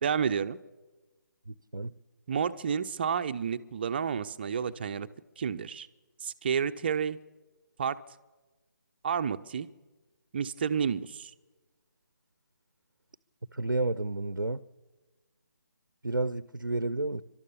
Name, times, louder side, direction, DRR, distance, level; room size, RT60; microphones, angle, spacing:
voice 1, 0.0-0.6 2.3-5.1 5.4-5.9 6.2-7.2 7.8-8.0 9.0-9.7 10.3-11.3, right 7 dB, 30° right, 0.7 m, -30 dB
voice 2, 1.5-1.9 13.5-14.6 16.0-17.2, right 2 dB, 85° right, 0.7 m, -31 dB
30.0 x 12.5 x 6.9 m
figure-of-eight pair, 150°, 10 cm